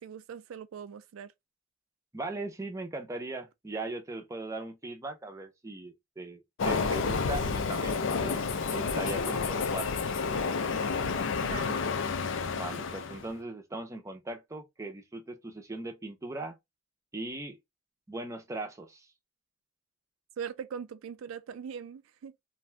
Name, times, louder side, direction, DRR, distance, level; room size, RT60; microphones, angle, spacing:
voice 1, 0.0-1.3 11.4-11.8 20.4-22.3, right 7 dB, 85° right, 0.3 m, -41 dB
voice 2, 2.1-8.4 8.7-9.9 12.6-16.6 17.1-17.6 18.1-19.1, right 2 dB, 15° right, 0.5 m, -39 dB
Train, 6.6-13.3, left 5 dB, 65° left, 0.4 m, -30 dB
2.5 x 2.2 x 3.1 m
head